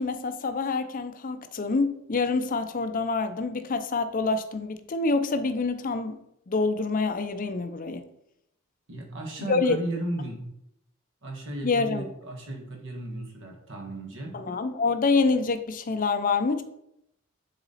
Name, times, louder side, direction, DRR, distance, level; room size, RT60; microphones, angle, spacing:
voice 1, 0.0-6.2 6.5-8.0 9.5-9.8 11.6-12.0 14.3-16.6, left 4 dB, 40° left, 0.5 m, -26 dB
voice 2, 8.9-10.4 11.2-14.3, right 1 dB, 60° right, 1.4 m, -35 dB
7.0 x 4.0 x 4.1 m
head